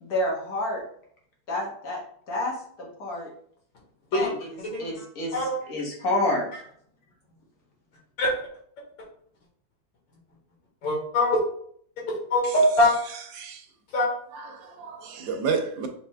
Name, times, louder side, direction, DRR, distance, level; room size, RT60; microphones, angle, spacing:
voice 1, 0.0-0.8 1.5-2.0 2.3-3.3 4.1-4.5 4.8-5.4 5.7-6.6, left 1 dB, 55° left, 1.7 m, -29 dB
voice 2, 10.8-11.4 12.3-12.9 13.9-14.1, left 1 dB, 85° left, 2.4 m, -22 dB
voice 3, 14.3-15.9, right 5 dB, 90° right, 1.5 m, -30 dB
6.3 x 3.5 x 2.2 m
omnidirectional pair, 2.0 m